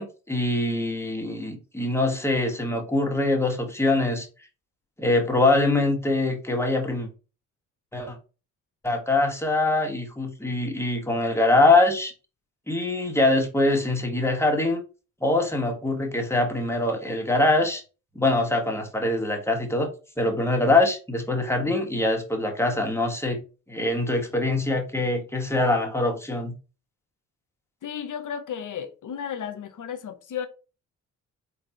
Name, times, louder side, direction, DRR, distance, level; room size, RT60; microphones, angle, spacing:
voice 1, 0.0-4.3 5.0-7.1 7.9-8.2 8.8-12.1 12.7-14.8 15.2-17.8 18.1-19.9 20.2-23.4 23.7-26.5, left 2 dB, 5° left, 1.3 m, -23 dB
voice 2, 27.8-30.5, left 8 dB, 50° left, 0.7 m, -33 dB
3.9 x 3.3 x 2.9 m
hypercardioid pair, 45°, 38 cm